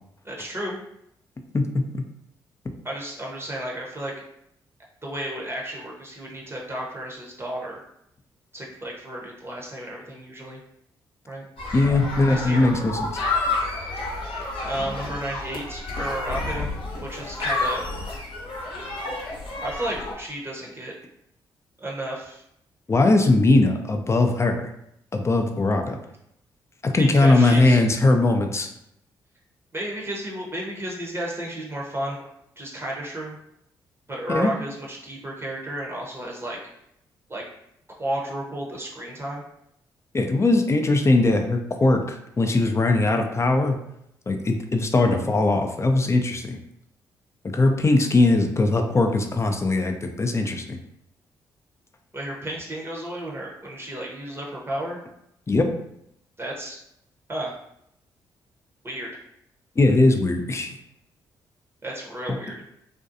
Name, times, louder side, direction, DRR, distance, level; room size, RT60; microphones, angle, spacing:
voice 1, 0.2-0.8 2.8-4.1 5.0-7.8 8.5-10.6 11.3-11.4 12.3-12.7 14.6-16.7 17.0-17.8 19.6-20.9 21.8-22.4 27.0-27.8 29.7-32.2 32.6-33.4 34.1-36.6 37.3-37.4 38.0-39.4 52.1-55.0 56.4-56.8 57.3-57.5 58.8-59.1 61.8-62.6, right 1 dB, 25° right, -2 dB, 0.7 m, -32 dB
voice 2, 1.5-2.0 11.7-13.1 22.9-24.7 25.1-26.0 26.8-28.7 34.3-34.5 40.1-43.8 44.3-46.6 47.5-50.8 55.5-55.7 59.8-60.7, left 2 dB, 25° left, 4 dB, 0.4 m, -20 dB
sound 1, 11.6-20.1, left 2 dB, 55° left, 0.8 m, -30 dB
2.5 x 2.2 x 2.6 m, 0.77 s
hypercardioid pair, 40°, 10 cm